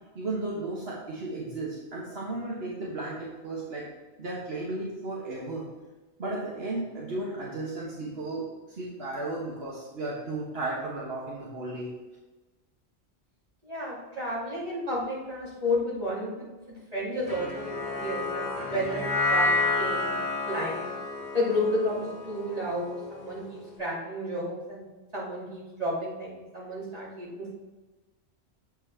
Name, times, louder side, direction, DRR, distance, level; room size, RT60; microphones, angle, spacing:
voice 1, 0.1-3.8 4.2-5.6 6.2-11.9, right 2 dB, 70° right, -5 dB, 1.6 m, -34 dB
voice 2, 13.6-19.5 19.8-20.9 21.3-24.8 25.1-27.5, left 1 dB, 40° right, -6 dB, 2.9 m, -32 dB
sound 1, 17.3-23.6, left 2 dB, 5° right, 2.7 m, -30 dB
7.7 x 4.5 x 5.5 m, 1.2 s
omnidirectional pair, 1.1 m